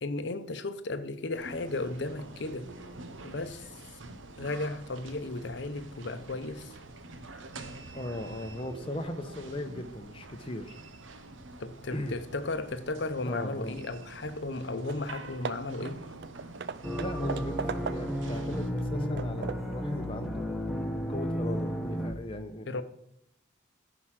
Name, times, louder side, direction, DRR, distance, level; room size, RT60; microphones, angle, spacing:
voice 1, 0.0-2.7 3.2-3.7 4.4-6.7 11.6-16.0 22.7-22.8, left 2 dB, 60° left, 0.8 m, -35 dB
sound 1, 1.3-18.7, right 2 dB, 80° right, 1.0 m, -46 dB
voice 2, 7.9-10.8 11.9-12.2 13.2-13.8 17.0-20.5 21.1-22.8, left 1 dB, 30° left, 0.9 m, -38 dB
Hammer / Wood, 14.9-15.1 15.4-18.3 18.8-19.8, right 6 dB, 55° right, 0.4 m, -39 dB
sound 2, 16.8-22.1, equal, ahead, 0.9 m, -33 dB
14.5 x 5.0 x 5.9 m
head